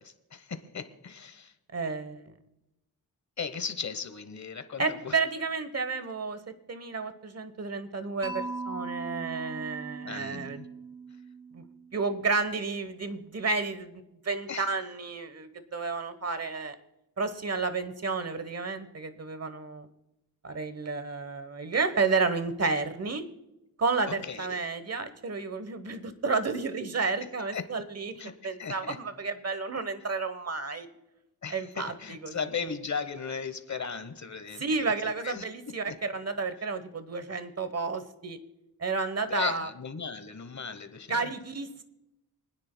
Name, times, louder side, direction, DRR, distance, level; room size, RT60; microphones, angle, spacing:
voice 1, 0.0-1.5 3.4-5.2 10.0-10.7 14.5-14.7 24.2-24.6 27.5-27.6 28.2-29.0 31.4-34.6 35.2-35.4 35.9-36.0 39.2-41.2, left 6 dB, 45° left, 11 dB, 1.0 m, -37 dB
voice 2, 1.7-2.3 4.8-6.4 6.7-10.6 11.5-11.6 11.9-16.7 17.2-19.9 20.4-23.2 23.8-28.1 28.4-30.9 31.5-32.3 34.6-38.4 38.8-39.7 41.1-41.8, right 4 dB, 40° right, 11 dB, 1.0 m, -31 dB
Mallet percussion, 8.2-12.2, right 3 dB, 10° right, 3.8 m, -40 dB
29.0 x 9.7 x 2.2 m, 0.93 s
wide cardioid pair, 80°, 39 cm